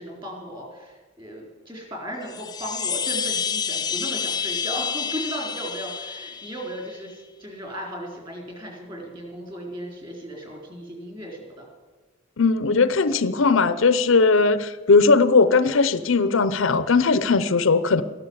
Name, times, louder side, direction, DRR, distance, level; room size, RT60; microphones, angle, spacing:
voice 1, 0.0-11.7, equal, 20° right, 0 dB, 4.0 m, -36 dB
Chime, 2.2-6.9, left 7 dB, 20° left, 0.6 m, -29 dB
voice 2, 12.4-18.0, left 4 dB, 65° left, 14 dB, 0.6 m, -19 dB
14.0 x 11.5 x 8.0 m, 1.3 s
head